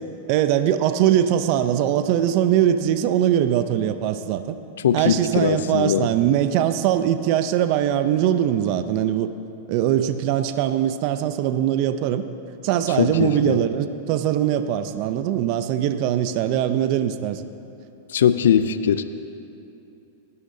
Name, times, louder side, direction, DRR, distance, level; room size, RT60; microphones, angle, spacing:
voice 1, 0.3-4.6 4.9-9.3 9.7-12.2 12.6-17.5, right 10 dB, 50° right, 10 dB, 0.5 m, -21 dB
voice 2, 4.8-6.1 13.0-13.6 18.1-19.0, left 8 dB, 85° left, 12 dB, 0.4 m, -20 dB
20.0 x 12.5 x 2.7 m, 2.7 s
hypercardioid pair, 125°, 0 cm